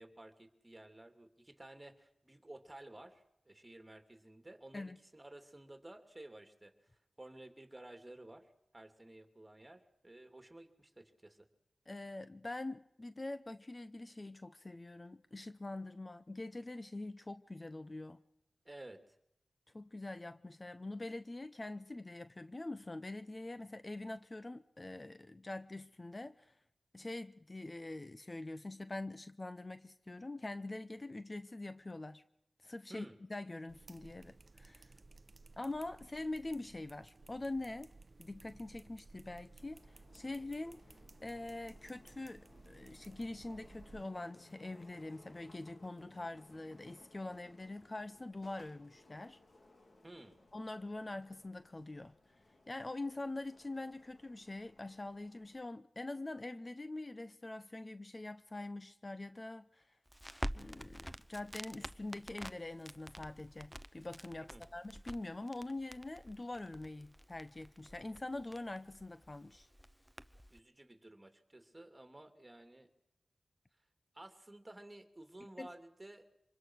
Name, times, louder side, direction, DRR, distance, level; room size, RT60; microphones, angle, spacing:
voice 1, 0.0-6.7 7.2-11.5 18.6-19.1 32.9-33.2 50.0-50.4 64.5-64.6 70.5-72.9 74.1-76.3, right 1 dB, 25° right, 2.8 m, -54 dB
voice 2, 11.9-18.2 19.7-26.5 26.9-32.2 32.6-34.9 35.6-37.9 38.2-40.8 41.2-49.4 50.5-52.1 52.7-60.0 60.5-69.7 75.6-75.7, left 2 dB, 35° left, 0.8 m, -44 dB
sound 1, 33.7-44.0, right 3 dB, 50° right, 0.8 m, -59 dB
sound 2, 39.6-55.6, left 2 dB, 60° left, 2.8 m, -63 dB
Crackle, 60.1-70.6, equal, 5° right, 0.8 m, -48 dB
25.5 x 21.0 x 6.3 m
cardioid pair, 50°, 0 cm